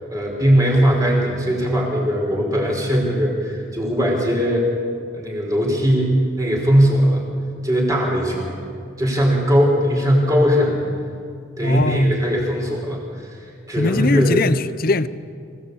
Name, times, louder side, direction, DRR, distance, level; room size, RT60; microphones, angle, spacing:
voice 1, 0.1-4.6 5.1-7.2 7.6-8.5 9.0-10.8 11.6-13.4 13.7-14.4, equal, 15° right, 5.1 m, -19 dB
voice 2, 11.6-12.2 13.8-15.1, left 3 dB, 45° left, 0.7 m, -21 dB
27.5 x 17.0 x 8.6 m
head